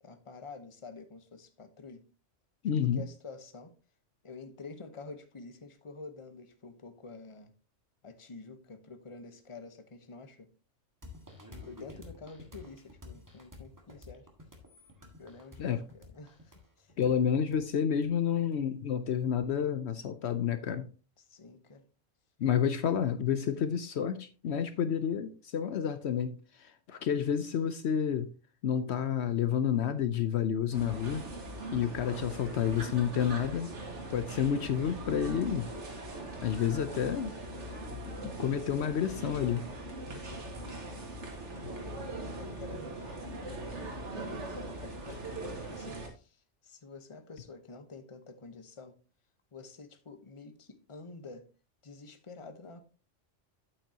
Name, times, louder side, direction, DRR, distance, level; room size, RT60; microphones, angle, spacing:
voice 1, 0.0-2.0 2.8-3.7 4.2-7.5 8.0-10.5 11.6-14.3 15.2-17.3 21.2-21.8 38.4-39.2 40.1-41.1 41.5-48.9 49.5-51.4 51.8-52.8, left 4 dB, 30° left, 1.0 m, -49 dB
voice 2, 2.6-3.0 15.6-15.8 17.0-20.9 22.4-28.3 28.6-31.2 31.7-33.7 34.1-35.7 36.4-37.3 38.1-39.7, left 8 dB, 65° left, 0.9 m, -30 dB
sound 1, 11.0-18.6, left 2 dB, 15° right, 1.7 m, -51 dB
sound 2, 30.7-46.1, right 2 dB, 75° right, 2.2 m, -41 dB
8.9 x 8.5 x 2.8 m
omnidirectional pair, 1.2 m